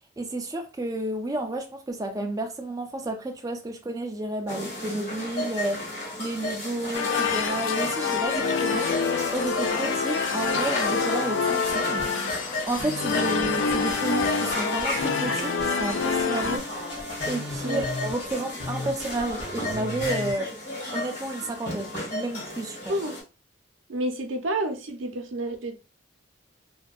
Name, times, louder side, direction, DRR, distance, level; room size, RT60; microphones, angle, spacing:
voice 1, 0.2-5.9 6.2-8.9 9.3-12.1 12.3-16.6 17.3-20.5 20.9-22.9, right 2 dB, 20° right, 0.3 m, -31 dB
sound 1, 4.5-23.2, left 1 dB, 55° left, 1.4 m, -34 dB
sound 2, 6.9-16.6, left 5 dB, 80° left, 0.4 m, -27 dB
sound 3, 11.6-20.3, left 1 dB, 25° left, 0.7 m, -37 dB
voice 2, 23.9-25.8, right 1 dB, 85° right, 0.5 m, -29 dB
2.6 x 2.1 x 2.3 m
head